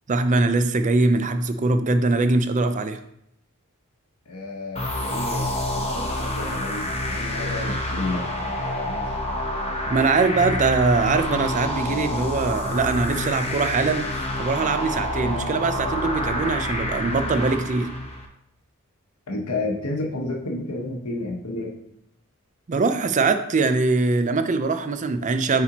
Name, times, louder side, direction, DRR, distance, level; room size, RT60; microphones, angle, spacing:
voice 1, 0.1-3.0 9.9-14.1 14.4-17.9 22.7-25.6, right 3 dB, 35° right, 9 dB, 0.4 m, -22 dB
voice 2, 4.3-9.1 19.3-21.7, left 2 dB, 85° left, 0 dB, 1.1 m, -31 dB
sound 1, 4.8-18.3, left 1 dB, 30° left, 0.8 m, -28 dB
8.5 x 4.1 x 2.9 m, 0.76 s
head